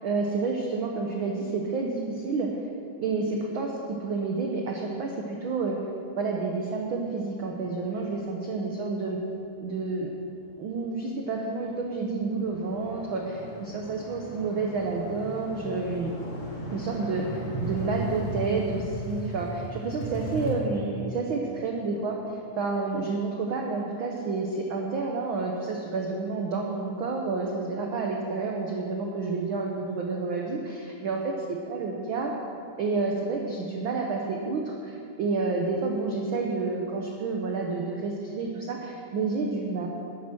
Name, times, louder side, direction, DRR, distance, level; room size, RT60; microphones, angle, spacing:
voice 1, 0.0-2.5 3.0-5.8 6.2-9.2 9.6-10.1 10.6-13.4 13.7-16.1 16.7-31.3 31.8-32.3 32.8-39.9, right 3 dB, 75° right, 0 dB, 1.1 m, -29 dB
sound 1, 11.2-11.3 11.7-20.5, right 1 dB, 40° left, 2.7 m, -37 dB
12.0 x 10.0 x 6.2 m, 2.5 s
omnidirectional pair, 3.6 m